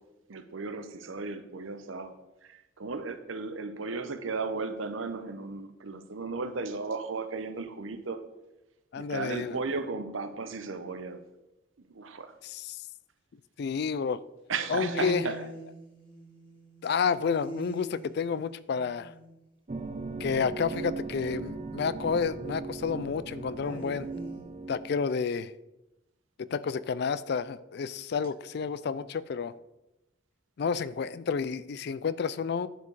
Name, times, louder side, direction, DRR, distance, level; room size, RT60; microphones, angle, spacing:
voice 1, 0.3-2.1 2.4-8.2 9.0-11.2 11.9-12.3 14.5-15.4, right 4 dB, 85° right, 10 dB, 0.8 m, -35 dB
voice 2, 8.9-9.6 12.4-12.8 13.6-14.2 14.7-15.2 16.8-19.1 20.2-24.1 24.7-25.5 26.4-29.5 30.6-32.7, left 6 dB, 55° left, 17 dB, 0.3 m, -30 dB
sound 1, 13.8-13.9 14.7-19.4 23.6-24.4, equal, 25° left, 2.3 m, -42 dB
sound 2, 19.7-25.0, right 3 dB, 35° right, 0.5 m, -38 dB
10.0 x 4.6 x 4.7 m, 0.96 s
head